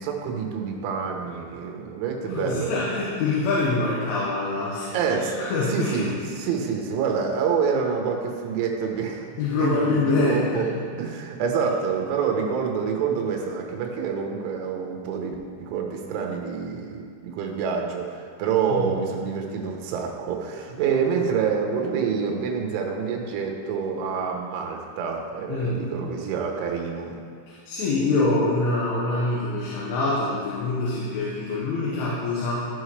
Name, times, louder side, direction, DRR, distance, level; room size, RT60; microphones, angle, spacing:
voice 1, 0.0-2.7 4.9-9.3 9.6-10.7 11.0-27.2, right 6 dB, 80° right, 1 dB, 3.3 m, -27 dB
voice 2, 2.3-4.9 5.2-6.2 9.4-10.8 18.7-18.9 25.5-25.8 27.5-32.6, left 3 dB, 80° left, -7 dB, 3.7 m, -25 dB
14.5 x 6.2 x 3.2 m, 2.1 s
omnidirectional pair, 5.6 m